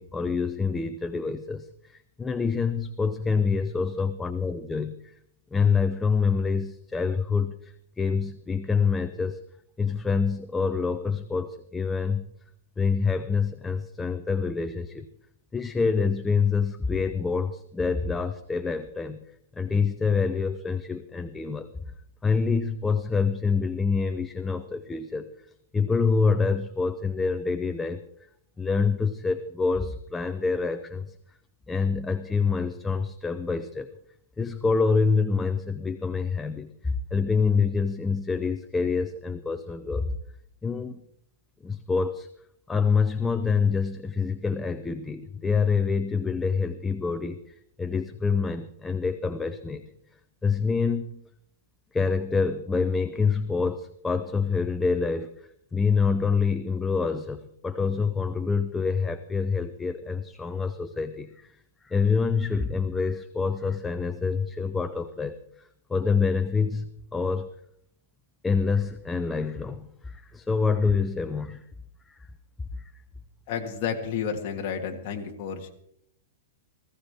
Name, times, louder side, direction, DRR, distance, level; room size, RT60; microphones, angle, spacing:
voice 1, 0.0-5.2 5.5-9.4 9.8-12.3 12.8-15.1 15.5-19.2 19.6-21.7 22.2-25.3 25.7-28.0 28.6-31.1 31.7-33.9 34.4-40.1 40.6-41.0 41.6-42.3 42.7-49.8 50.4-51.2 51.9-61.6 61.8-67.5 68.4-71.7 72.1-72.2 72.7-72.9, left 5 dB, 5° left, 9 dB, 0.5 m, -26 dB
voice 2, 73.5-75.7, left 7 dB, 35° left, 1 dB, 1.6 m, -31 dB
19.0 x 15.5 x 3.5 m, 0.71 s
supercardioid pair, 175°, 0 cm